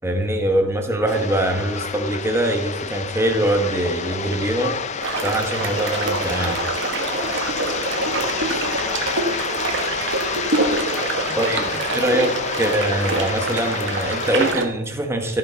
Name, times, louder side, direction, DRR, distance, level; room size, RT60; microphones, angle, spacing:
voice 1, 0.0-4.8 5.2-6.6 11.4-15.4, right 1 dB, 10° right, 4 dB, 1.0 m, -23 dB
sound 1, 1.1-14.5, left 6 dB, 30° left, 0.4 m, -29 dB
sound 2, 5.0-14.6, right 3 dB, 55° right, 1.4 m, -25 dB
voice 2, 7.8-8.9 10.7-11.8, left 2 dB, 90° left, 3 dB, 1.9 m, -40 dB
14.5 x 5.9 x 4.0 m, 0.86 s
head